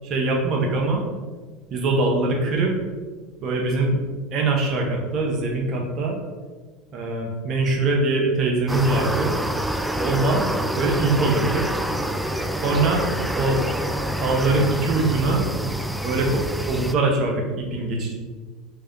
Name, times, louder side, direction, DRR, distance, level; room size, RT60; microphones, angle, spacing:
voice 1, 0.0-1.0 1.7-2.7 3.4-4.0 4.3-6.2 6.9-9.3 10.0-10.5 10.7-11.8 12.6-13.1 13.3-13.6 14.2-15.5 16.0-18.1, right 2 dB, 50° right, 1 dB, 1.0 m, -22 dB
sound 1, 8.7-16.9, equal, 5° right, 0.3 m, -27 dB
3.3 x 3.3 x 3.8 m, 1.4 s
hypercardioid pair, 85°, 0 cm